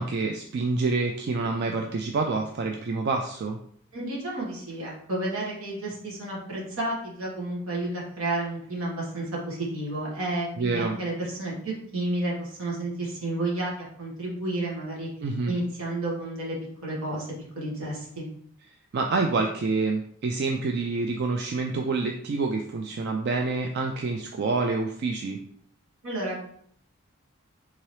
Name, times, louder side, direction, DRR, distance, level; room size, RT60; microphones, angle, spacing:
voice 1, 0.0-3.6 10.6-11.0 15.2-15.6 18.9-25.4, right 3 dB, 50° right, 2 dB, 0.3 m, -27 dB
voice 2, 3.9-15.1 15.5-16.6 16.8-17.3 17.5-18.2 26.0-26.4, right 2 dB, 85° right, -4 dB, 1.4 m, -31 dB
3.7 x 2.9 x 3.1 m, 0.63 s
head